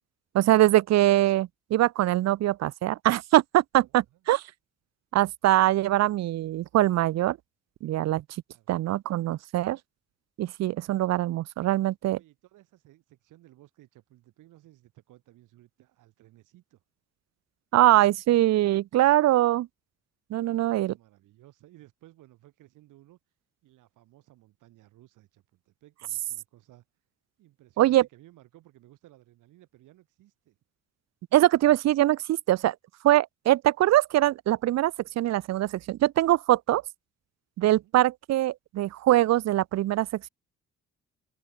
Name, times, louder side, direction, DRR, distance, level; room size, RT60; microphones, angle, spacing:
voice 1, 0.3-4.4 5.1-7.4 7.8-8.2 8.7-9.8 10.4-12.2 17.7-19.7 20.3-20.9 27.8-28.0 31.3-32.8 33.0-36.8 37.6-40.3, right 14 dB, 60° right, 0.5 m, -23 dB
voice 2, 3.8-4.3 8.5-8.7 12.1-16.8 20.3-23.2 23.6-26.8 27.4-30.6 37.8-38.0, right 16 dB, 90° right, 6.6 m, -57 dB
open air
cardioid pair, 90°, 30 cm